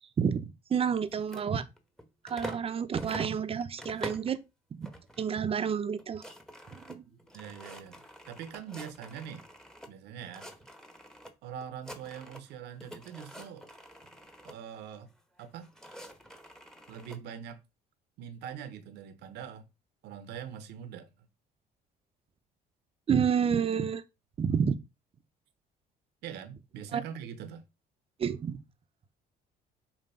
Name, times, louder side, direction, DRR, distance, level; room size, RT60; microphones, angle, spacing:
voice 1, 0.2-1.7 2.2-4.4 4.7-4.9 5.2-6.2 6.7-7.0 23.1-24.0 24.4-24.7 26.9-27.0 28.2-28.6, right 7 dB, 35° right, 0.8 m, -29 dB
sound 1, 1.0-2.7 3.0-4.4 4.8-5.3 5.6-5.7 5.9-9.9 10.2-11.3 11.6-12.5 12.8-14.6 15.4-17.2, equal, 5° left, 1.1 m, -46 dB
voice 2, 7.1-9.4 9.9-10.5 11.4-13.7 14.4-15.1 15.4-15.7 16.9-17.6 18.2-19.6 20.0-21.3 26.2-27.6, right 8 dB, 85° right, 1.2 m, -43 dB
7.3 x 3.0 x 5.6 m
cardioid pair, 110°, 17 cm